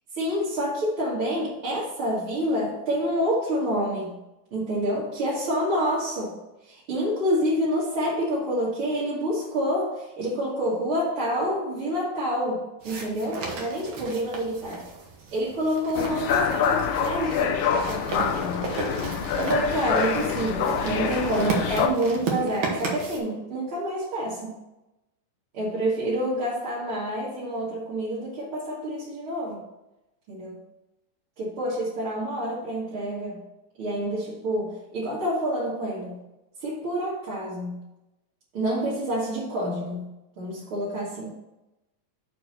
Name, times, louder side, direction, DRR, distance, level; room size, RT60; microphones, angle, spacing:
voice 1, 0.1-4.2 4.5-6.4 6.6-14.8 15.3-18.7 19.4-24.6 25.5-29.6 30.3-30.6 31.4-33.4 33.8-36.2 36.6-37.8 38.5-40.1 40.4-41.3, equal, 50° right, -8 dB, 1.9 m, -28 dB
sound 1, 12.8-23.2, right 4 dB, 80° right, 1.1 m, -34 dB
sound 2, 15.9-21.9, left 7 dB, 75° left, 2.2 m, -26 dB
6.3 x 4.5 x 6.5 m, 0.97 s
omnidirectional pair, 4.1 m